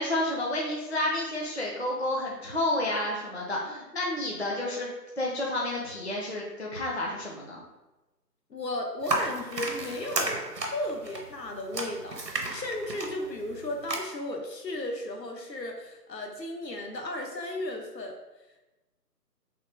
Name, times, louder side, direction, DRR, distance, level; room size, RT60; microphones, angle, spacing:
voice 1, 0.0-4.9 5.2-7.6, left 1 dB, 45° left, -3 dB, 0.4 m, -30 dB
voice 2, 8.5-18.1, left 1 dB, 80° left, 2 dB, 0.8 m, -35 dB
sound 1, 9.0-14.0, right 2 dB, 75° right, 0.8 m, -33 dB
3.1 x 2.9 x 3.2 m, 1.1 s
figure-of-eight pair, 155°, 49 cm